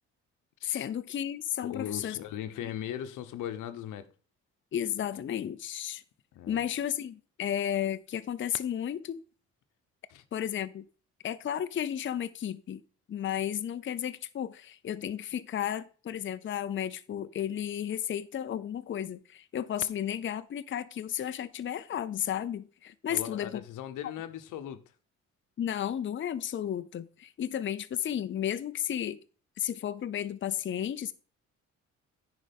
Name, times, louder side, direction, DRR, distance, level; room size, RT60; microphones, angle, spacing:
voice 1, 0.6-2.2 2.6-2.7 4.7-6.0 6.5-9.2 10.3-10.9 11.2-12.8 13.1-23.5 25.6-29.2 29.6-31.1, left 10 dB, 40° left, 0.6 m, -33 dB
voice 2, 1.6-4.1 6.3-6.7 10.1-10.2 23.1-24.9, left 10 dB, 85° left, 0.9 m, -39 dB
9.8 x 4.9 x 5.2 m
cardioid pair, 90°, 30 cm